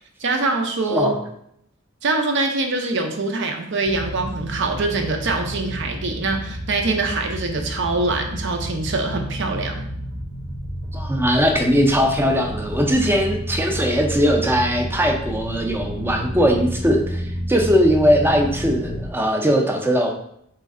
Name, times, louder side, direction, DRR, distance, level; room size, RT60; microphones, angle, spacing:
voice 1, 0.2-1.1 2.0-9.8, right 3 dB, 60° right, 5 dB, 0.6 m, -24 dB
sound 1, 3.8-19.1, equal, 35° right, 0.8 m, -30 dB
voice 2, 10.9-20.1, equal, 10° right, 3 dB, 0.5 m, -19 dB
4.3 x 3.1 x 3.6 m, 0.72 s
head